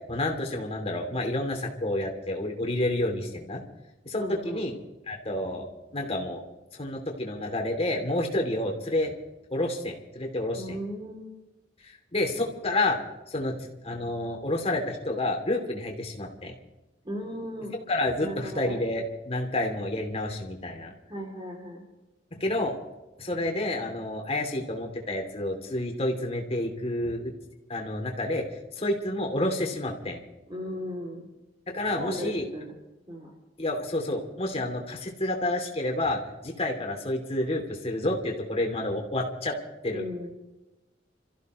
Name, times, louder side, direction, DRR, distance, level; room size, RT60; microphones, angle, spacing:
voice 1, 0.1-3.6 4.0-4.7 5.1-5.7 5.9-6.4 6.7-9.1 9.5-10.8 11.8-13.0 13.3-16.5 17.9-20.9 22.4-22.8 23.2-27.3 27.7-28.5 28.8-30.2 31.7-32.5 33.6-39.6 39.8-40.0, left 1 dB, 35° left, 2 dB, 2.9 m, -29 dB
voice 2, 4.2-4.6 10.6-11.3 17.0-17.7 18.2-18.8 21.1-21.8 30.5-31.3 31.9-32.8 33.1-33.3 39.9-40.3, equal, 25° right, -1 dB, 3.0 m, -36 dB
28.5 x 15.0 x 3.2 m, 1.0 s
head